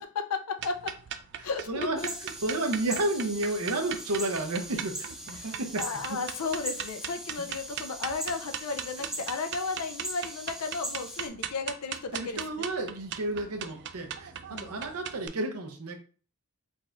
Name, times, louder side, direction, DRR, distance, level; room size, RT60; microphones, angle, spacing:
voice 1, 0.3-0.9 1.4-2.1 5.4-12.7 14.5-14.8, left 4 dB, 90° left, 6 dB, 0.5 m, -34 dB
sound 1, 0.6-15.3, right 9 dB, 55° right, 0.3 m, -39 dB
voice 2, 1.4-2.0 2.4-5.8 9.0-9.1 12.1-15.9, right 2 dB, 75° right, 5 dB, 0.7 m, -32 dB
sound 2, 2.0-11.3, right 1 dB, 5° right, 0.6 m, -40 dB
4.0 x 2.5 x 3.3 m, 0.40 s
head